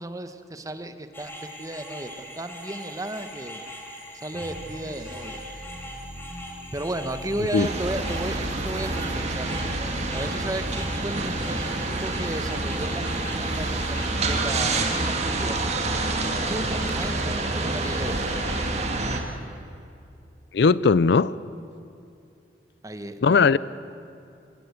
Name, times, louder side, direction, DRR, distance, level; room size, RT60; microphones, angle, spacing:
voice 1, 0.0-3.6 4.1-5.4 6.7-9.5 10.1-15.6 16.4-18.3 22.8-23.6, right 1 dB, 20° right, 9 dB, 1.0 m, -34 dB
sound 1, 1.1-18.7, equal, 10° left, 3.6 m, -41 dB
sound 2, 4.3-17.1, equal, 55° right, 5.7 m, -40 dB
sound 3, 7.6-19.2, right 2 dB, 40° right, 1.9 m, -27 dB
voice 2, 20.5-21.3 23.2-23.6, left 4 dB, 65° left, 19 dB, 0.4 m, -18 dB
25.5 x 16.5 x 8.4 m, 2.5 s
head